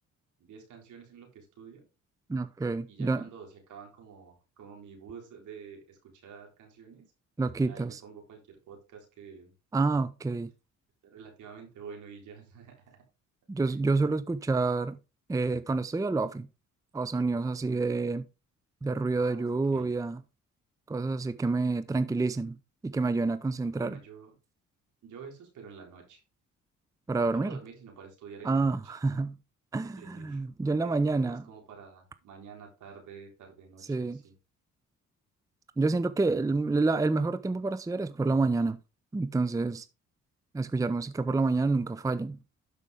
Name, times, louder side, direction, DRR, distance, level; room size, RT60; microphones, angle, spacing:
voice 1, 0.4-1.9 2.9-7.1 7.6-9.5 11.0-13.0 13.6-13.8 19.2-19.9 23.7-24.4 25.0-26.2 27.2-28.9 30.0-30.4 30.8-34.4 36.4-36.5, right 6 dB, 75° right, 3.9 m, -49 dB
voice 2, 2.3-3.2 7.4-8.0 9.7-10.5 13.5-15.0 15.3-16.5 16.9-18.3 18.8-20.2 20.9-22.6 22.8-24.0 27.1-27.6 28.4-29.4 29.7-31.4 33.9-34.2 35.8-38.8 39.1-39.9 40.5-42.4, right 3 dB, 10° right, 0.6 m, -28 dB
12.0 x 5.4 x 3.6 m
cardioid pair, 90°, 30 cm